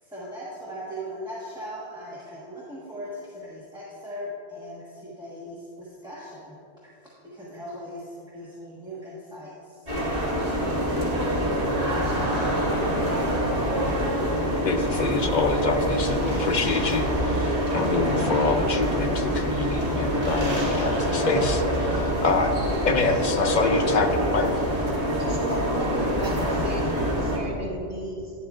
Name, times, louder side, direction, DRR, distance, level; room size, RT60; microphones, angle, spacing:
voice 1, 0.0-6.6 7.3-11.4 12.2-12.9, equal, 5° right, -8 dB, 1.2 m, -39 dB
sound 1, 9.9-27.4, equal, 35° right, 2.1 m, -25 dB
voice 2, 14.6-22.6 22.8-24.5, left 4 dB, 50° left, 5 dB, 0.7 m, -26 dB
voice 3, 25.2-28.3, equal, 85° right, -5 dB, 2.2 m, -34 dB
11.5 x 10.5 x 2.4 m, 2.6 s
omnidirectional pair, 1.1 m